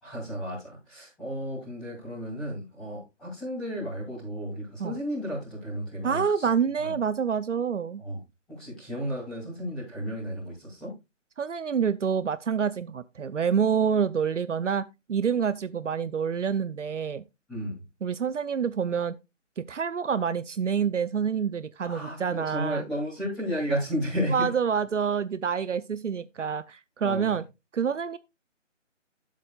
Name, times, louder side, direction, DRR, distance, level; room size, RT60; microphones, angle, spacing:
voice 1, 0.0-6.5 6.8-6.9 8.0-8.2 8.5-10.9 17.5-17.8 21.8-24.4 27.0-27.3, equal, ahead, 2.6 m, -33 dB
voice 2, 6.0-8.0 11.4-17.2 18.0-19.1 19.6-22.8 24.3-27.4 27.7-28.2, right 7 dB, 70° right, 0.7 m, -27 dB
12.5 x 7.5 x 2.4 m
hypercardioid pair, 180°, 38 cm